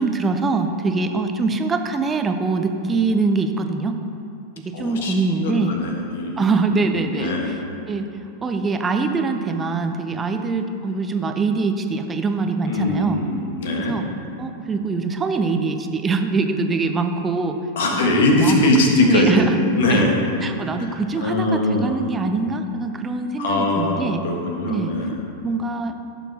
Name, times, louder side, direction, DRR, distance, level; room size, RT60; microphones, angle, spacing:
voice 1, 0.0-4.0 4.7-5.7 6.4-7.6 7.9-8.1 8.4-13.2 13.8-14.1 14.4-17.6 18.0-18.7 19.0-19.6 19.9-20.0 20.4-24.2 24.7-24.9 25.4-25.9, right 4 dB, 20° right, 7 dB, 0.6 m, -23 dB
voice 2, 4.7-6.5 6.9-7.5 12.7-14.0 17.7-19.5 19.8-20.1 20.8-22.0 23.4-25.2, left 1 dB, 60° left, 1 dB, 1.4 m, -21 dB
14.5 x 7.1 x 2.9 m, 2.6 s
figure-of-eight pair, 90°, 0 cm